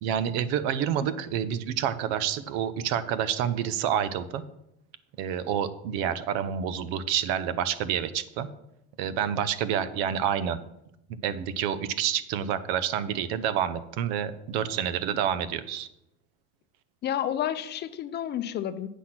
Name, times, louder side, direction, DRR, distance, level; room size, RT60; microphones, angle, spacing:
voice 1, 0.0-4.4 5.2-8.5 9.0-10.6 11.2-15.9, right 9 dB, 80° right, 14 dB, 0.8 m, -28 dB
voice 2, 17.0-18.9, left 10 dB, 35° left, 12 dB, 0.5 m, -30 dB
8.3 x 5.9 x 5.9 m, 0.81 s
cardioid pair, 145°, 30 cm